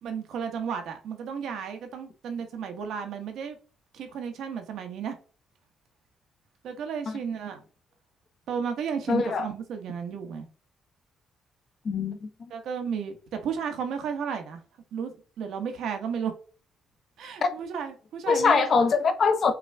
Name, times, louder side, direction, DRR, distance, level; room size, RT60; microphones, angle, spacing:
voice 1, 0.0-3.6 3.9-5.1 6.6-7.6 8.5-10.5 12.5-13.1 13.4-14.6 14.9-16.3 17.2-18.7, right 7 dB, 75° right, 1.1 m, -33 dB
voice 2, 9.1-9.5 11.9-12.3 18.3-19.5, left 5 dB, 50° left, 0.9 m, -22 dB
5.9 x 2.5 x 3.4 m
cardioid pair, 90°, 0 cm